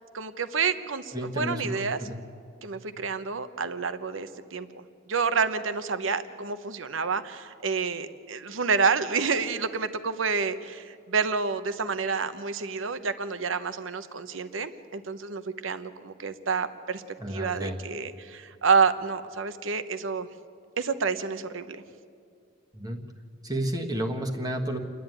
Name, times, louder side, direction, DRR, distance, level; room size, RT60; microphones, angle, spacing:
voice 1, 0.1-2.0 2.6-17.0 17.3-20.3 20.8-21.8, right 5 dB, 80° right, 11 dB, 1.0 m, -29 dB
voice 2, 1.1-2.2 17.2-17.8 22.7-23.0 23.4-24.8, right 1 dB, 20° right, 1 dB, 1.4 m, -31 dB
29.0 x 11.0 x 9.1 m, 2.3 s
head